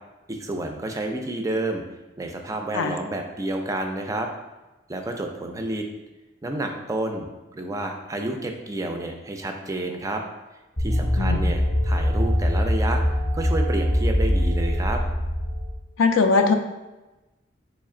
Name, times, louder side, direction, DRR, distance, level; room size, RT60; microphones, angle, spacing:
voice 1, 0.3-1.8 2.2-4.3 4.9-5.9 6.4-10.2 10.8-13.0 13.3-15.0, right 2 dB, 15° right, 4 dB, 0.3 m, -30 dB
sound 1, 10.8-15.7, equal, 30° left, 0.6 m, -22 dB
voice 2, 16.0-16.5, left 4 dB, 85° left, 7 dB, 0.4 m, -20 dB
3.2 x 3.1 x 3.7 m, 1.1 s
head